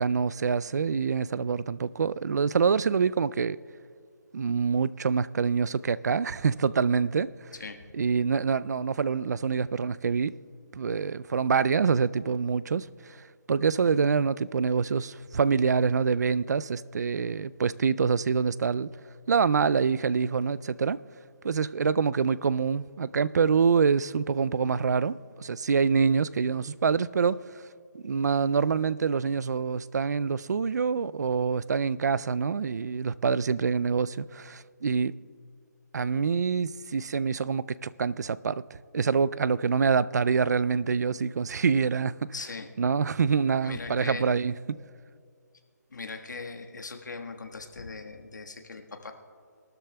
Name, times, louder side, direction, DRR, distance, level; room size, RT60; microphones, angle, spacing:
voice 1, 0.0-3.6 4.3-7.3 7.9-10.3 10.7-12.9 13.5-18.9 19.3-21.0 21.4-27.4 27.9-35.1 35.9-42.3 42.8-44.8, right 5 dB, 65° right, 0.4 m, -26 dB
voice 2, 42.3-42.7 43.6-44.3 45.9-49.1, left 4 dB, 75° left, 1.4 m, -39 dB
21.5 x 13.0 x 2.2 m
hypercardioid pair, 170°, 10 cm